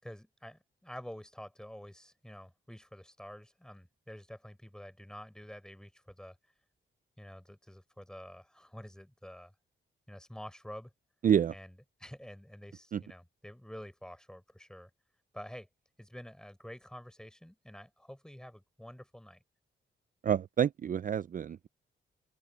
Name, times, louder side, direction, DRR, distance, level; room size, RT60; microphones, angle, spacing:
voice 1, 0.0-6.4 7.2-9.5 10.1-10.9 11.5-14.9 15.3-15.7 16.0-19.4, equal, 5° left, 4.2 m, -48 dB
voice 2, 11.2-11.5 12.9-13.0 20.2-21.7, right 8 dB, 40° right, 0.4 m, -28 dB
open air
cardioid pair, 105°, 21 cm